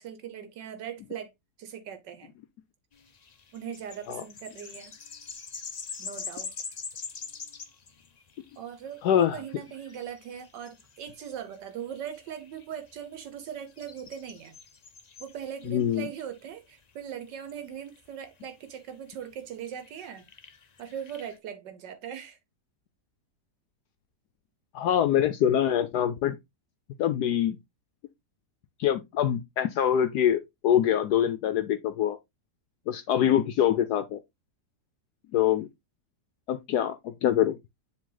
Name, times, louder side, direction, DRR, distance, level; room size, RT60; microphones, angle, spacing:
voice 1, 0.0-1.3 1.6-2.3 3.5-4.9 6.0-6.5 8.6-14.6 15.2-20.3 20.8-22.4, right 9 dB, 80° right, 1.5 m, -40 dB
sound 1, 2.9-21.4, left 5 dB, 55° left, 0.4 m, -45 dB
voice 2, 9.0-9.4 15.7-16.1 24.7-26.4 27.0-27.6 28.8-32.2 32.9-34.2 35.3-35.7 36.5-37.6, left 10 dB, 70° left, 1.1 m, -24 dB
7.5 x 3.4 x 3.9 m
omnidirectional pair, 1.9 m